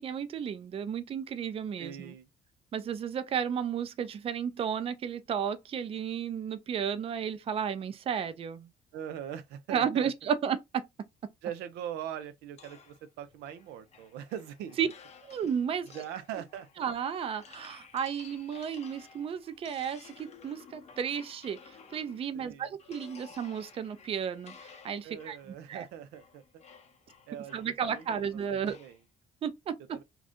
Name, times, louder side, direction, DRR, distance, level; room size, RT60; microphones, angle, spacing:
voice 1, 0.0-2.1 2.7-8.7 9.7-10.8 14.8-14.9 15.3-15.9 16.8-25.4 25.7-25.8 27.5-28.8 29.4-30.0, right 8 dB, 35° right, 0.4 m, -33 dB
voice 2, 1.8-2.3 8.9-10.1 11.4-14.8 15.9-16.7 22.3-22.7 25.0-26.4 27.3-29.0 29.9-30.0, right 9 dB, 85° right, 0.5 m, -41 dB
sound 1, 12.6-22.4 22.8-29.0, left 6 dB, 40° left, 0.6 m, -55 dB
2.6 x 2.3 x 3.5 m
cardioid pair, 110°, 17 cm